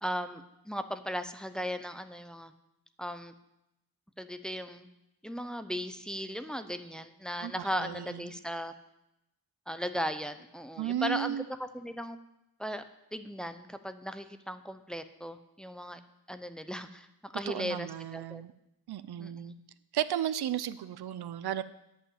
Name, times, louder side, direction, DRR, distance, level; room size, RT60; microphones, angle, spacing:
voice 1, 0.0-2.5 3.0-3.3 4.2-4.9 5.2-8.7 9.7-11.4 11.7-12.2 12.6-12.8 13.1-16.0 16.3-18.4 19.2-19.5, equal, ahead, 9 dB, 0.6 m, -37 dB
voice 2, 7.4-8.2 10.8-11.4 17.5-18.5 18.9-19.6 19.9-21.6, right 11 dB, 75° right, 14 dB, 0.6 m, -34 dB
10.0 x 5.6 x 8.5 m, 0.87 s
wide cardioid pair, 115°, 39 cm